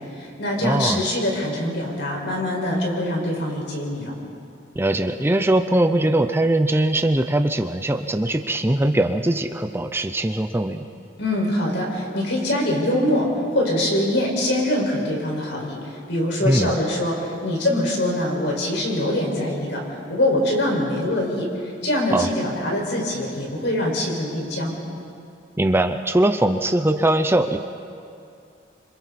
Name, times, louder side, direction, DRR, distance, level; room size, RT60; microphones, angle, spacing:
voice 1, 0.0-4.1 11.2-19.8 20.1-21.5 21.8-24.8, left 1 dB, 70° left, -1 dB, 5.4 m, -23 dB
voice 2, 0.6-1.0 4.8-10.8 16.4-16.7 22.1-22.3 25.6-27.6, right 1 dB, 15° right, 8 dB, 0.6 m, -21 dB
27.0 x 26.5 x 4.3 m, 2.5 s
head